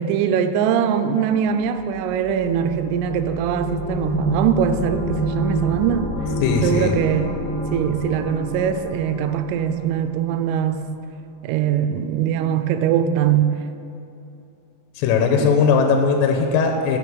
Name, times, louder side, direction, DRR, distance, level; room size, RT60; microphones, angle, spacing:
voice 1, 0.0-6.1 6.6-7.4 7.7-10.9 11.4-13.6 15.4-15.5, right 8 dB, 85° right, 3.1 m, -21 dB
sound 1, 1.5-10.3, equal, 30° left, 1.5 m, -29 dB
voice 2, 6.4-6.9 15.0-17.0, left 5 dB, 85° left, 3.2 m, -18 dB
8.6 x 6.5 x 6.3 m
omnidirectional pair, 5.9 m